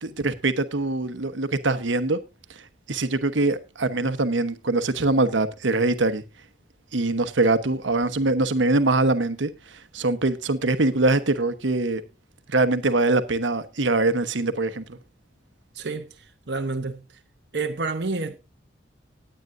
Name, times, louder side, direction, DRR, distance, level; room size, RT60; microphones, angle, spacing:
voice 1, 0.0-2.2 2.9-6.2 6.9-12.0 12.5-15.0, right 2 dB, 90° right, 1.1 m, -23 dB
voice 2, 15.7-16.1 16.5-17.0 17.5-18.4, right 3 dB, 65° right, 0.9 m, -28 dB
18.5 x 9.0 x 2.6 m
head